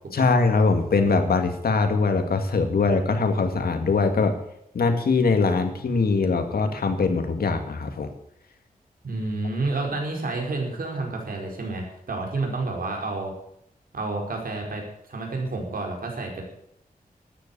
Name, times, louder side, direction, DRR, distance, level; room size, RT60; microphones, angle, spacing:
voice 1, 0.1-4.4 4.7-8.1, left 4 dB, 85° left, 7 dB, 2.1 m, -22 dB
voice 2, 9.0-13.3 13.9-14.8 15.1-16.4, right 3 dB, 70° right, 1 dB, 4.8 m, -29 dB
13.0 x 10.0 x 8.6 m, 0.75 s
wide cardioid pair, 120°, 15 cm